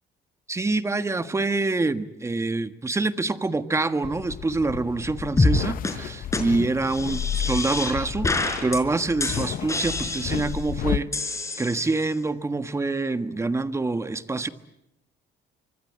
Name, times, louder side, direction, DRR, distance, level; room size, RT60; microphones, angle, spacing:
voice 1, 0.5-8.3 8.6-11.1 11.6-14.5, right 3 dB, 15° right, 10 dB, 1.5 m, -26 dB
sound 1, 4.0-11.0, left 11 dB, 55° left, 0.9 m, -32 dB
sound 2, 5.4-5.6 5.8-5.9 6.3-6.4 6.9-7.9 8.2-8.8 9.2-10.6 11.1-12.1, left 3 dB, 15° left, 4.7 m, -26 dB
25.0 x 24.5 x 8.7 m, 0.85 s
cardioid pair, 110°, 17 cm